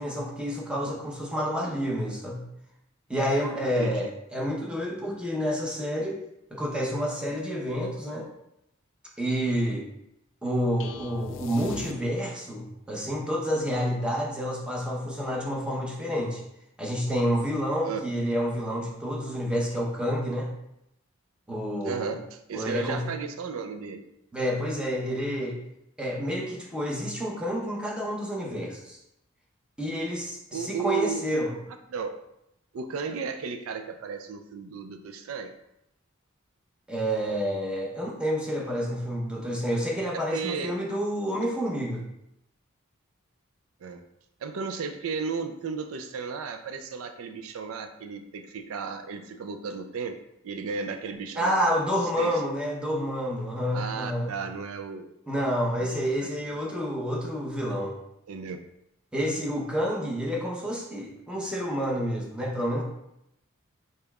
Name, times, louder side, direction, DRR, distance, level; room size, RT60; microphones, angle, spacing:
voice 1, 0.0-2.4 3.1-6.2 6.5-8.3 9.2-9.9 10.4-16.4 16.8-20.5 21.5-22.1 22.5-23.0 24.3-25.6 26.0-29.0 29.8-31.5 36.9-42.0 51.4-54.3 55.3-58.0 59.1-62.8, equal, 5° right, -3 dB, 0.8 m, -29 dB
voice 2, 3.7-4.1 17.8-18.0 21.8-24.0 30.5-31.6 31.9-32.1 32.7-35.5 40.3-40.8 43.8-44.0 44.4-50.2 50.4-51.8 52.2-52.4 53.7-55.1 55.7-56.6 58.3-58.6, right 5 dB, 85° right, 8 dB, 0.4 m, -34 dB
sound 1, 10.8-12.5, left 6 dB, 65° left, 0.4 m, -42 dB
5.1 x 4.2 x 2.3 m, 0.81 s
head